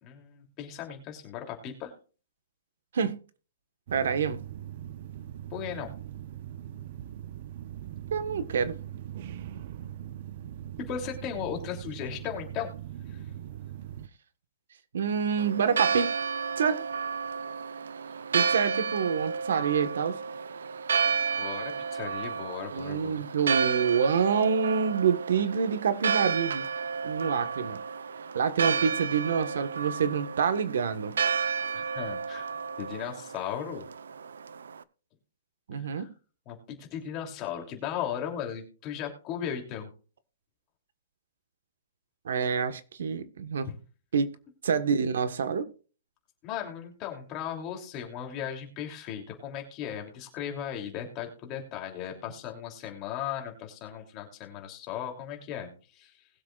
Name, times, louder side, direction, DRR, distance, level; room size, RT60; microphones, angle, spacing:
voice 1, 0.0-1.9 5.5-5.9 10.8-12.7 13.1-13.3 21.4-23.2 31.7-32.5 32.8-33.9 35.8-36.1 36.4-39.9 43.7-43.8 46.4-56.3, left 9 dB, 25° left, 3.1 m, -37 dB
sound 1, 3.9-14.1, right 11 dB, 45° right, 0.8 m, -41 dB
voice 2, 3.9-4.4 8.1-8.8 14.9-16.2 16.6-16.8 18.3-20.2 22.7-26.7 27.0-27.8 28.3-31.1 35.7-36.1 42.2-43.7 44.1-44.3 44.6-45.7, right 6 dB, 70° right, 1.4 m, -27 dB
Church bell, 15.4-34.8, right 6 dB, 85° right, 0.8 m, -31 dB
20.5 x 7.6 x 2.5 m
hypercardioid pair, 165°, 0 cm